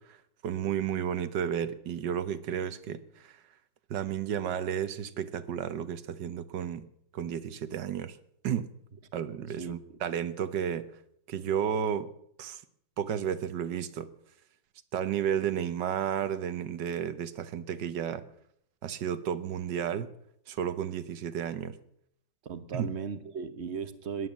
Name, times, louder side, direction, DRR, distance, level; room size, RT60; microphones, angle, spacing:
voice 1, 0.4-3.3 3.9-6.9 7.1-8.2 8.4-8.7 9.1-10.9 11.3-12.1 12.4-12.6 13.0-14.1 14.9-18.2 18.8-20.1 20.5-21.8 22.7-22.9, right 9 dB, 70° right, 13 dB, 1.6 m, -32 dB
voice 2, 22.4-24.3, right 6 dB, 40° right, 12 dB, 1.2 m, -36 dB
17.5 x 11.5 x 7.3 m, 0.72 s
omnidirectional pair, 2.0 m